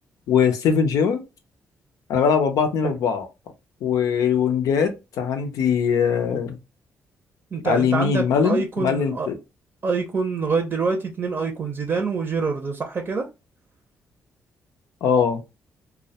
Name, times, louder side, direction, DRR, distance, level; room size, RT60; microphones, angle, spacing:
voice 1, 0.3-1.2 2.1-3.3 3.8-6.6 7.6-9.3 15.0-15.4, left 7 dB, 85° left, 0.5 m, -21 dB
voice 2, 7.5-9.3 9.8-13.3, right 4 dB, 40° right, 0.5 m, -25 dB
2.1 x 2.1 x 2.7 m
cardioid pair, 85°, 6 cm